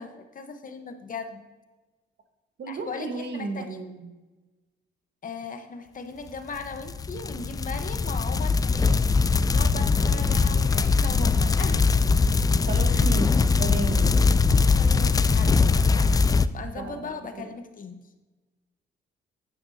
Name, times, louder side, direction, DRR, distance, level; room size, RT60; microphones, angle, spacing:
voice 1, 0.0-1.5 2.7-3.8 5.2-11.9 12.9-13.0 14.8-16.2 16.5-18.0, left 4 dB, 45° left, 7 dB, 1.0 m, -38 dB
voice 2, 2.6-4.1 12.7-13.3 13.6-14.2 16.8-17.1, right 4 dB, 60° right, 6 dB, 1.3 m, -33 dB
sound 1, 6.7-16.5, left 4 dB, 20° left, 0.3 m, -21 dB
9.5 x 9.4 x 2.7 m, 1.2 s
cardioid pair, 90°, 20 cm